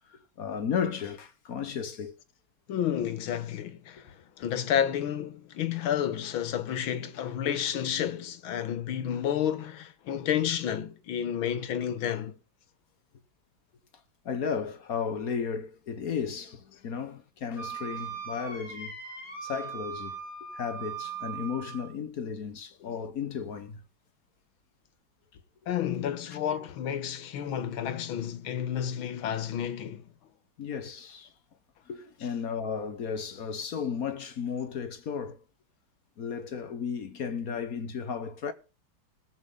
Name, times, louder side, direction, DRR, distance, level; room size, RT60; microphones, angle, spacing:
voice 1, 0.1-2.1 14.2-19.0 19.4-20.2 20.5-23.8 26.3-26.6 30.6-31.3 31.9-35.4 36.2-38.5, left 6 dB, 55° left, 1.3 m, -34 dB
voice 2, 2.7-12.4 25.7-30.0, left 9 dB, 85° left, 1.9 m, -31 dB
Wind instrument woodwind instrument, 17.6-21.9, right 6 dB, 25° left, 6.8 m, -39 dB
18.5 x 7.5 x 3.7 m
omnidirectional pair, 2.2 m